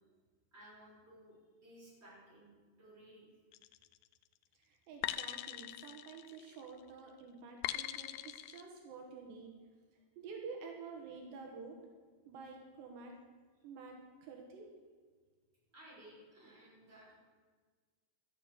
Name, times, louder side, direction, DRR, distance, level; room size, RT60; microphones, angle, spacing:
voice 1, 0.5-2.5 2.8-3.3 15.7-17.2, right 1 dB, 15° right, -6 dB, 5.3 m, -57 dB
sound 1, 3.5-4.0 5.0-6.7 7.6-8.6, left 14 dB, 85° left, 2.2 m, -41 dB
voice 2, 4.5-9.5 9.9-11.8 12.3-13.2 13.6-14.7, right 4 dB, 80° right, 2 dB, 3.6 m, -50 dB
13.0 x 8.7 x 8.4 m, 1.5 s
omnidirectional pair, 5.0 m